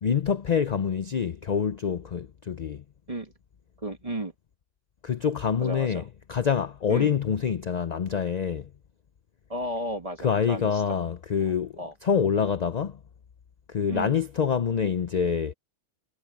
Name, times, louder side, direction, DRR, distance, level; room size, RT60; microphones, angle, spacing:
voice 1, 0.0-2.8 5.0-8.7 10.2-11.7 12.0-13.0 13.7-15.5, left 7 dB, 45° left, 0.6 m, -26 dB
voice 2, 3.8-4.3 5.6-6.0 6.9-7.1 9.5-10.8 11.4-11.5 11.8-11.9 13.9-14.2, right 1 dB, 30° right, 2.0 m, -33 dB
omnidirectional pair, 1.3 m